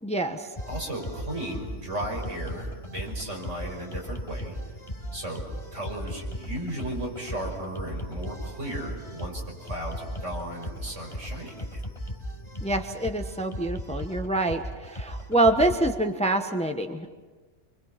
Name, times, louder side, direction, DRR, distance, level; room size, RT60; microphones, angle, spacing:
voice 1, 0.0-0.5 12.6-17.1, right 1 dB, 5° left, 6 dB, 1.0 m, -26 dB
sound 1, 0.6-15.9, equal, 25° left, 4.6 m, -37 dB
voice 2, 0.7-4.6 5.1-11.9, right 1 dB, 80° right, -1 dB, 6.1 m, -35 dB
27.0 x 24.0 x 5.8 m, 1.3 s
omnidirectional pair, 1.2 m